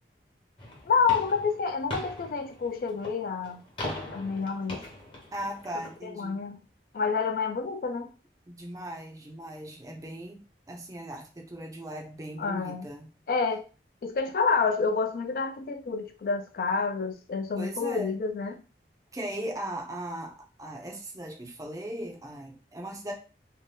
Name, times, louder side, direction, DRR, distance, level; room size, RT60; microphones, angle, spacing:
sound 1, 0.6-6.0, left 1 dB, 30° left, 0.8 m, -40 dB
voice 1, 0.9-3.6 4.1-4.8 6.0-6.6 6.9-8.1 12.4-12.9 13.3-13.7 14.0-18.6, left 5 dB, 55° left, 0.3 m, -28 dB
voice 2, 5.3-6.4 8.5-13.1 17.5-18.2 19.1-23.1, right 1 dB, 20° right, 0.5 m, -38 dB
2.7 x 2.2 x 3.2 m
head